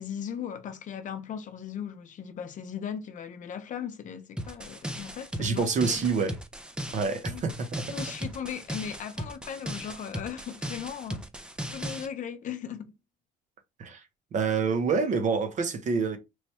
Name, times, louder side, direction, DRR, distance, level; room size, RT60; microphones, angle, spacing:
voice 1, 0.0-6.1 7.3-7.4 7.9-11.3 11.7-12.9, left 8 dB, 50° left, 0.6 m, -38 dB
sound 1, 4.4-12.1, equal, 5° right, 0.4 m, -37 dB
voice 2, 5.4-6.4 6.9-7.8 13.8-14.1 14.3-16.2, right 5 dB, 45° right, 0.7 m, -27 dB
3.1 x 2.2 x 4.2 m
cardioid pair, 110°, 17 cm